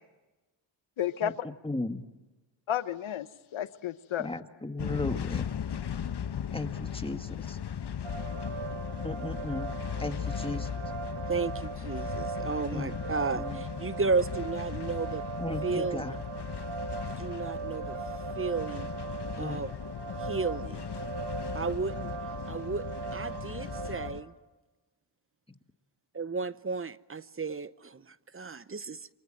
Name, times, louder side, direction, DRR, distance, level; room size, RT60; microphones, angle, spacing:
voice 1, 1.0-1.5 2.7-4.3, left 10 dB, 80° left, 1.1 m, -32 dB
voice 2, 1.6-2.0 4.2-5.5 6.5-7.6 9.0-9.7 10.0-10.7 12.7-13.0 13.3-13.6 15.4-16.2 19.4-19.6, left 2 dB, 10° left, 1.9 m, -36 dB
sound 1, 4.8-24.2, left 8 dB, 55° left, 1.2 m, -37 dB
sound 2, 8.0-24.1, right 6 dB, 70° right, 4.8 m, -39 dB
voice 3, 11.3-15.2 15.6-16.0 17.2-18.0 18.4-18.9 19.4-19.7 20.2-20.9 21.5-22.1 22.5-22.9 23.1-24.3 26.1-29.1, right 4 dB, 25° right, 0.8 m, -33 dB
28.5 x 24.5 x 7.7 m
cardioid pair, 70°, 48 cm